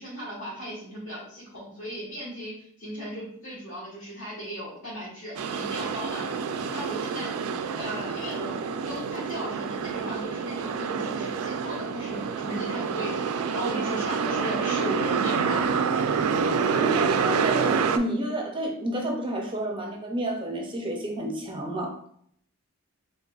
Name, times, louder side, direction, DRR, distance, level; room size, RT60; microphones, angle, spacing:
voice 1, 0.0-7.3 7.7-8.6 8.8-13.2 13.5-15.6, equal, 60° left, -8 dB, 1.4 m, -36 dB
sound 1, 5.4-18.0, right 6 dB, 90° right, 0.3 m, -27 dB
voice 2, 16.8-22.0, right 1 dB, 25° right, 1 dB, 0.5 m, -30 dB
3.8 x 3.2 x 2.3 m, 0.65 s
head